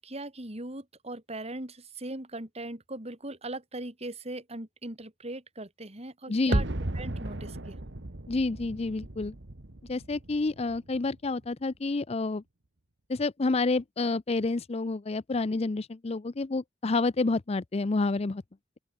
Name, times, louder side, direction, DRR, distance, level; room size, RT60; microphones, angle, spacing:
voice 1, 0.0-6.7 6.9-7.8, right 2 dB, 35° right, 3.5 m, -39 dB
voice 2, 6.3-6.6 8.3-9.4 9.9-12.4 13.1-18.4, left 3 dB, 35° left, 0.5 m, -29 dB
sound 1, 6.5-11.5 11.7-11.8, right 1 dB, 65° right, 1.8 m, -34 dB
open air
head